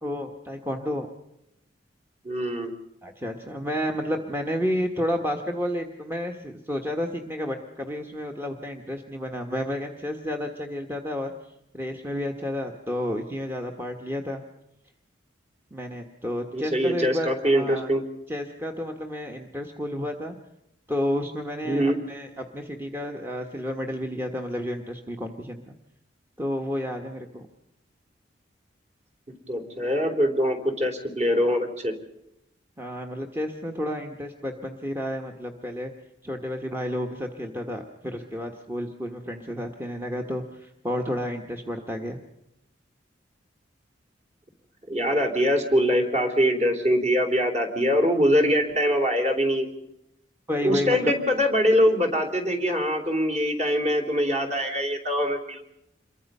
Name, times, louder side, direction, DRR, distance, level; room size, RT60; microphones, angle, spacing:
voice 1, 0.0-1.1 3.0-14.4 15.7-17.9 18.3-20.4 20.9-25.8 26.4-27.4 32.8-35.9 36.2-42.2 50.5-51.1, equal, 10° right, 3 dB, 1.3 m, -31 dB
voice 2, 2.2-2.7 16.5-18.0 21.6-22.0 29.5-32.0 44.9-49.7 50.6-55.6, equal, 35° right, 4 dB, 3.3 m, -23 dB
27.5 x 22.5 x 5.5 m, 0.82 s
head